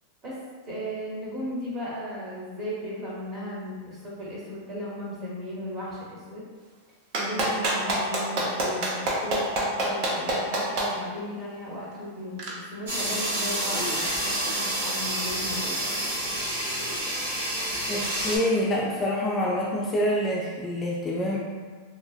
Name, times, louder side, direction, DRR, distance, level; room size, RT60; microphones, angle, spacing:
voice 1, 0.6-6.4 7.1-15.6, equal, 30° right, -6 dB, 1.0 m, -36 dB
Clapping, 7.1-10.9 12.4-12.5, right 2 dB, 50° right, 0.7 m, -25 dB
sound 1, 12.9-18.4, right 1 dB, 85° right, 1.0 m, -28 dB
voice 2, 17.9-21.4, equal, 20° left, -4 dB, 0.3 m, -26 dB
3.0 x 2.4 x 2.4 m, 1.5 s
supercardioid pair, 135°, 0 cm